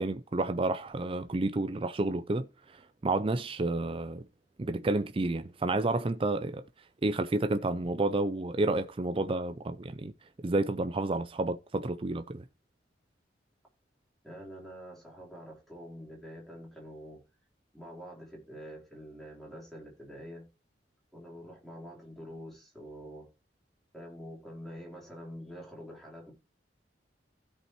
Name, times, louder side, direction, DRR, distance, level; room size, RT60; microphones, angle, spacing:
voice 1, 0.0-2.5 2.7-4.2 4.6-6.6 7.0-10.1 10.4-12.4, right 2 dB, 30° right, 0.5 m, -30 dB
voice 2, 14.2-17.2 17.7-20.5 21.1-23.3 23.9-26.3, equal, ahead, 3.9 m, -46 dB
16.0 x 5.5 x 3.0 m
head